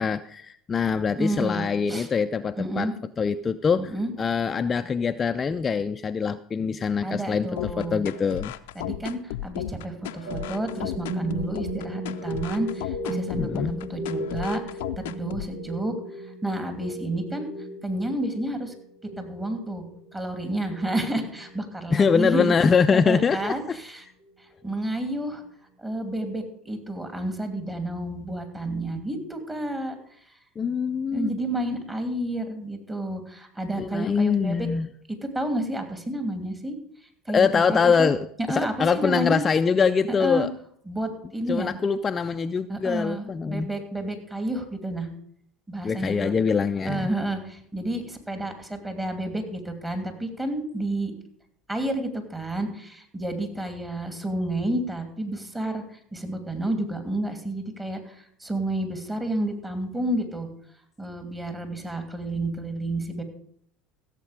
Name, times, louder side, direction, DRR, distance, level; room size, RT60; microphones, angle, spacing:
voice 1, 0.0-2.9 3.2-8.5 13.4-13.8 21.9-23.8 30.6-31.3 33.8-34.9 37.3-38.2 38.5-40.5 41.5-43.7 45.8-47.1, left 5 dB, 30° left, 9 dB, 0.5 m, -24 dB
voice 2, 1.2-2.1 2.6-2.9 3.8-4.1 7.0-8.0 8.7-13.6 13.9-17.5 17.8-18.7 19.2-19.8 20.1-22.5 22.9-24.0 24.6-25.4 25.8-29.9 31.1-34.7 35.2-36.8 37.3-38.1 38.5-39.4 40.2-40.5 40.9-41.8 42.7-45.1 45.7-46.3 46.8-51.1 51.7-60.5 61.0-63.2, right 1 dB, 15° right, 7 dB, 2.7 m, -30 dB
sound 1, 7.6-15.5, left 14 dB, 80° left, 0.6 m, -34 dB
sound 2, 10.3-23.7, equal, 80° right, 1.9 m, -37 dB
15.5 x 7.4 x 5.1 m, 0.66 s
hypercardioid pair, 85°, 0 cm